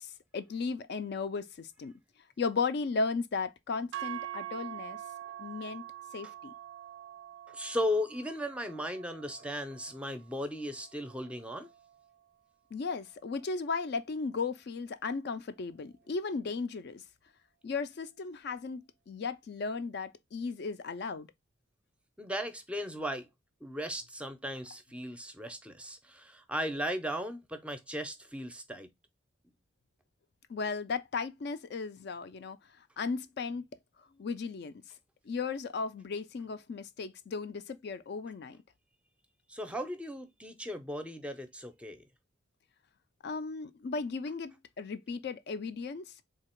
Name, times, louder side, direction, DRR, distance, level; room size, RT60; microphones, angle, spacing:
voice 1, 0.0-1.9 2.4-5.0 5.4-5.8 6.1-6.5 12.7-17.0 17.6-21.3 30.5-32.6 33.0-33.7 34.2-34.7 35.3-38.6 43.2-46.1, left 4 dB, 55° left, 0.4 m, -35 dB
sound 1, 3.9-12.2, right 12 dB, 70° right, 0.3 m, -45 dB
voice 2, 7.5-11.7 22.2-23.3 23.6-28.9 39.5-42.0, equal, 5° right, 0.5 m, -36 dB
3.8 x 2.9 x 4.2 m
head